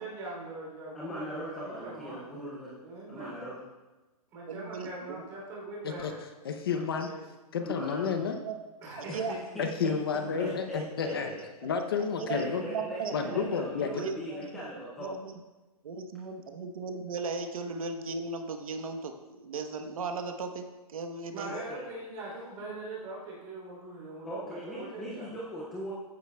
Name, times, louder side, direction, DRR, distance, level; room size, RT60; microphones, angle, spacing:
voice 1, 0.0-2.2 2.8-3.4 4.3-6.2 7.0-7.2 8.8-9.3 9.6-9.9 10.3-10.5 21.3-25.3, right 2 dB, 15° right, -5 dB, 3.1 m, -42 dB
voice 2, 0.9-2.8 3.1-3.6 6.0-6.1 7.6-8.1 9.1-9.3 10.4-11.4 12.3-15.1 21.5-21.9 24.2-25.9, equal, ahead, -6 dB, 0.3 m, -39 dB
voice 3, 4.5-5.2 8.4-8.6 9.0-9.4 12.2-12.4 12.7-13.5 14.0-14.7 15.0-15.4 15.8-21.5, right 4 dB, 65° right, 6 dB, 1.0 m, -37 dB
voice 4, 6.4-7.1 7.5-8.4 9.6-11.3 11.6-12.6 13.1-14.0, left 6 dB, 40° left, 6 dB, 0.6 m, -31 dB
14.5 x 9.6 x 2.3 m, 1.1 s
hypercardioid pair, 175°, 20 cm